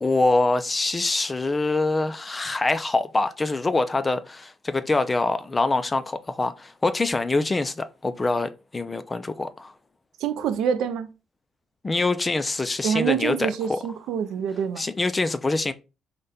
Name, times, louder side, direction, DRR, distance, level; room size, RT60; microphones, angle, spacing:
voice 1, 0.0-9.7 11.8-13.8 14.8-15.7, left 2 dB, 25° left, 0.4 m, -24 dB
voice 2, 10.2-11.1 12.8-14.8, right 8 dB, 85° right, 0.5 m, -26 dB
4.9 x 2.2 x 4.1 m
cardioid pair, 90°, 0 cm